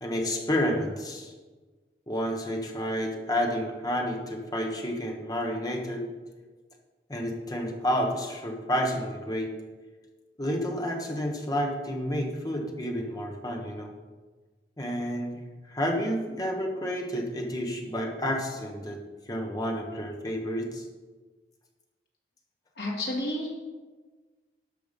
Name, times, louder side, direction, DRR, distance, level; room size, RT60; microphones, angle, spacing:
voice 1, 0.0-1.3 2.1-6.1 7.1-9.5 10.4-13.9 14.8-15.4 15.7-19.0 19.3-20.8, equal, 20° left, 2 dB, 1.3 m, -30 dB
voice 2, 22.8-23.5, left 1 dB, 65° left, -3 dB, 2.6 m, -30 dB
12.0 x 5.8 x 5.4 m, 1.3 s
head